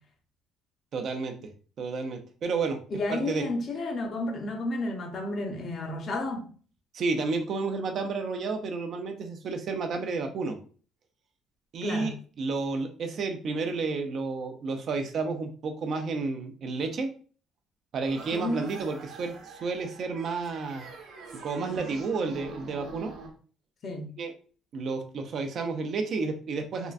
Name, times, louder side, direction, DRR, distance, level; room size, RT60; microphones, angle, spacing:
voice 1, 0.9-1.5 1.8-2.8 3.1-3.4 6.9-10.6 11.7-17.1 17.9-20.8 21.4-23.1 24.2-24.3 24.7-26.9, right 4 dB, 55° right, 0.5 m, -31 dB
voice 2, 2.9-6.5 11.8-12.1 18.3-18.7 21.6-21.8 23.8-24.1, left 2 dB, 45° left, 0.7 m, -32 dB
sound 1, 18.1-23.3, right 3 dB, 75° right, 0.9 m, -45 dB
3.6 x 2.2 x 2.4 m
cardioid pair, 115°, 0 cm